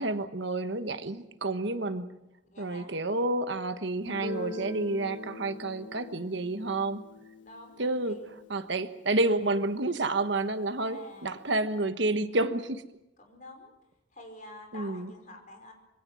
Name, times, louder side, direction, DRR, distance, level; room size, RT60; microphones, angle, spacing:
voice 1, 0.0-2.1 2.6-7.0 7.8-8.2 8.5-12.8 14.7-15.1, right 2 dB, 65° right, 10 dB, 1.2 m, -29 dB
voice 2, 2.5-2.9 7.4-8.5 10.8-11.5 13.2-13.7 14.1-15.7, left 1 dB, 40° left, 4 dB, 4.9 m, -49 dB
Guitar, 4.1-9.6, left 2 dB, 65° left, 1.6 m, -43 dB
26.0 x 22.5 x 6.3 m, 0.93 s
head